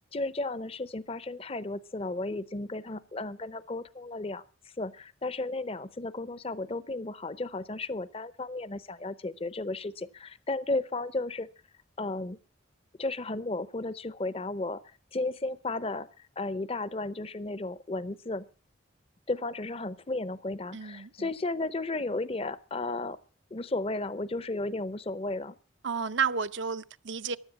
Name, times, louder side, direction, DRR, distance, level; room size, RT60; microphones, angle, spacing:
voice 1, 0.1-4.4 4.8-11.5 12.0-12.4 13.0-14.8 15.1-16.1 16.4-18.5 19.3-23.2 23.5-25.5, left 2 dB, 30° left, 0.6 m, -34 dB
voice 2, 20.7-21.3 25.8-27.4, right 6 dB, 65° right, 0.6 m, -31 dB
15.5 x 10.5 x 5.8 m
head